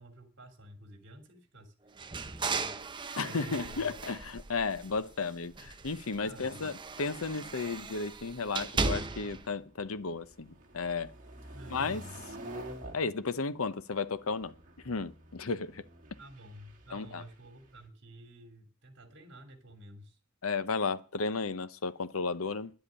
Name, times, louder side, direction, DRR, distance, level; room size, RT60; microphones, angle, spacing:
voice 1, 0.0-1.7 2.3-2.7 3.2-3.9 6.2-6.6 11.5-12.0 16.2-20.2, right 1 dB, 55° right, 2.8 m, -51 dB
sound 1, 2.0-5.1 5.5-9.5, right 4 dB, 20° right, 0.8 m, -37 dB
voice 2, 3.2-11.1 11.7-12.0 12.9-14.5 14.8-15.8 16.9-17.2 20.4-22.7, left 4 dB, 80° left, 0.8 m, -34 dB
sound 2, 8.7-17.8, right 1 dB, 40° right, 2.7 m, -49 dB
10.5 x 7.8 x 9.8 m
head